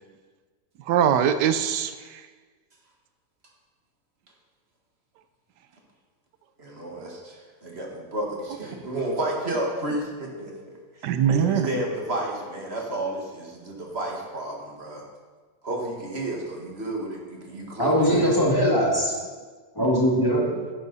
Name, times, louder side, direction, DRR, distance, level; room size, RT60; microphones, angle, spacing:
voice 1, 0.9-2.2 11.0-11.7, right 8 dB, 90° right, 11 dB, 1.2 m, -22 dB
voice 2, 6.6-7.1 7.6-10.5 11.3-15.0 15.6-18.4, right 1 dB, 40° right, -1 dB, 1.9 m, -31 dB
voice 3, 17.8-19.1 19.8-20.5, equal, 15° left, -4 dB, 2.0 m, -21 dB
10.5 x 10.5 x 4.1 m, 1.4 s
omnidirectional pair, 1.8 m